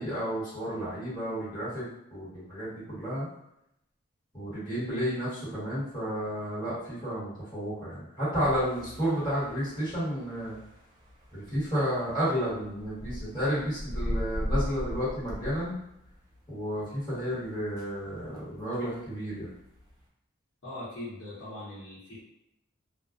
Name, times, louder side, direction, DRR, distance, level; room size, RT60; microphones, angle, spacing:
voice 1, 0.0-3.3 4.3-10.6 11.3-15.7 16.5-19.5, equal, 20° left, -12 dB, 1.3 m, -32 dB
sound 1, 8.4-20.0, equal, 20° right, 0.4 m, -39 dB
voice 2, 20.6-22.2, left 1 dB, 60° left, -10 dB, 0.9 m, -40 dB
2.3 x 2.2 x 2.4 m, 0.83 s
head